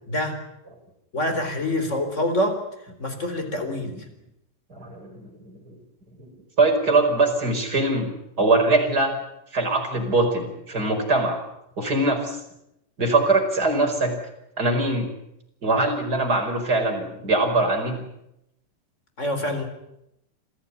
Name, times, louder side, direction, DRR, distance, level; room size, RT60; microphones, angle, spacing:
voice 1, 1.1-2.6 3.0-4.0 19.2-19.6, left 1 dB, 20° left, 7 dB, 4.1 m, -26 dB
voice 2, 4.7-5.8 6.2-6.3 6.6-9.1 9.5-11.4 11.8-12.4 13.0-14.1 14.6-15.1 15.6-18.0, right 2 dB, 25° right, 3 dB, 5.3 m, -22 dB
27.0 x 16.0 x 9.8 m, 0.83 s
omnidirectional pair, 3.8 m